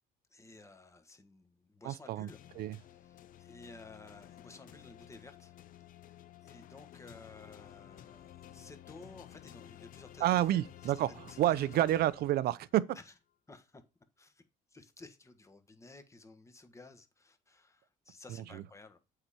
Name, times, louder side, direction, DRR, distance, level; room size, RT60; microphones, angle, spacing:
voice 1, 0.3-5.6 6.0-10.9 11.3-12.1 12.9-13.1 13.5-13.8 14.2-14.4 14.7-19.0, left 3 dB, 15° left, 1.3 m, -55 dB
voice 2, 1.8-2.3 2.6-2.8 10.2-12.8 18.5-18.6, right 13 dB, 65° right, 0.5 m, -29 dB
sound 1, 2.3-12.9, left 12 dB, 55° left, 0.6 m, -53 dB
8.1 x 4.9 x 4.3 m
cardioid pair, 110°, 17 cm